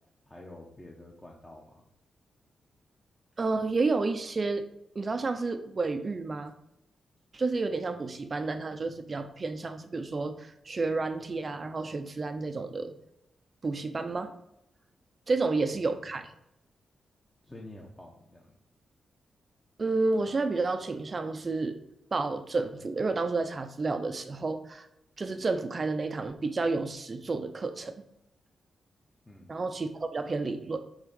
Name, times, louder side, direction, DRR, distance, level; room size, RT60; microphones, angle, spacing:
voice 1, 0.3-1.8 15.6-15.9 17.4-18.5 29.3-29.5, left 1 dB, 15° left, -1 dB, 1.0 m, -48 dB
voice 2, 3.4-4.6 4.9-6.5 7.3-12.9 13.6-14.3 15.3-16.3 19.8-21.8 22.1-24.9 25.2-27.9 29.5-30.8, right 3 dB, 30° right, 8 dB, 0.6 m, -30 dB
8.4 x 3.7 x 5.3 m, 0.83 s
wide cardioid pair, 140°, 0 cm